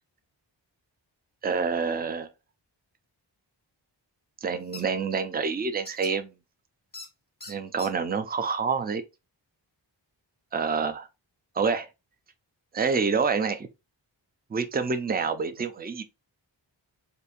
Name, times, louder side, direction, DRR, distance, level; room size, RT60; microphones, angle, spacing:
voice 1, 1.4-2.3 4.4-6.3 7.5-9.0 10.5-11.1 11.6-11.9 12.7-13.7 14.5-16.0, right 5 dB, 20° right, 0.4 m, -27 dB
sound 1, 4.7-4.8 5.8-6.1 6.9-7.1 7.4-7.9, left 3 dB, 20° left, 1.1 m, -41 dB
4.2 x 2.7 x 2.5 m
wide cardioid pair, 65°, 45 cm